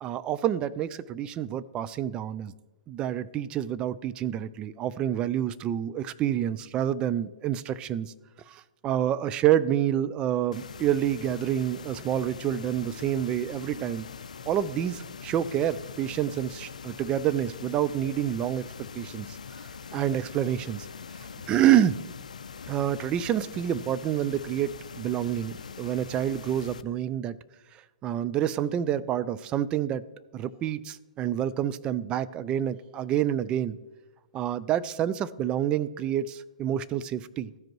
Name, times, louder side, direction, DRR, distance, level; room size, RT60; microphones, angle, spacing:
voice 1, 0.0-2.5 2.9-8.1 8.5-14.1 14.5-19.4 19.9-20.9 21.5-22.0 22.7-27.4 28.0-30.0 30.3-33.8 34.3-37.5, right 11 dB, 25° right, 15 dB, 0.3 m, -28 dB
sound 1, 10.5-26.8, left 6 dB, 80° left, 0.4 m, -42 dB
14.5 x 5.1 x 3.0 m, 1.1 s
hypercardioid pair, 125°, 4 cm